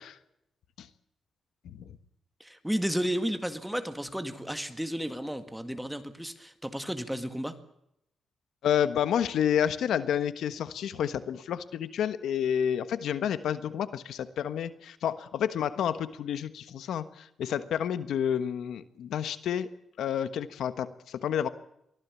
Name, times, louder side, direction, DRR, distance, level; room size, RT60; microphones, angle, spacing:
voice 1, 2.4-7.5, equal, 5° right, 9 dB, 2.0 m, -33 dB
voice 2, 8.6-19.7 20.0-21.5, left 9 dB, 85° left, 13 dB, 1.3 m, -29 dB
23.5 x 16.0 x 8.5 m, 0.78 s
cardioid pair, 135°, 0 cm